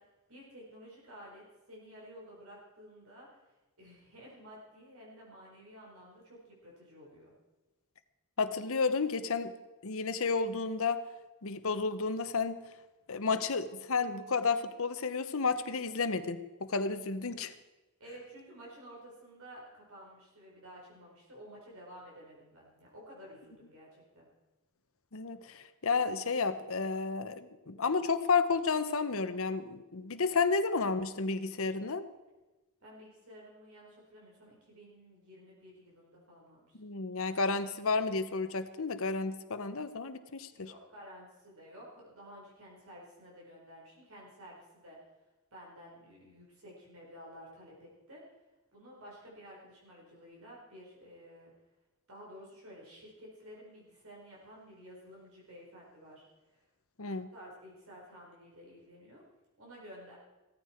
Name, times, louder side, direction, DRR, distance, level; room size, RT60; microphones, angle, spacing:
voice 1, 0.0-3.5 3.8-7.3 18.0-24.3 32.8-36.8 40.5-45.0 45.5-48.2 48.7-51.5 52.1-56.6 57.3-59.2 59.6-60.2, equal, 70° right, -4 dB, 4.7 m, -52 dB
voice 2, 8.4-9.5 9.8-11.0 11.4-12.6 13.1-17.5 25.1-32.1 36.8-40.7 57.0-57.3, left 4 dB, 65° left, 10 dB, 1.0 m, -31 dB
16.5 x 14.5 x 4.5 m, 1.1 s
head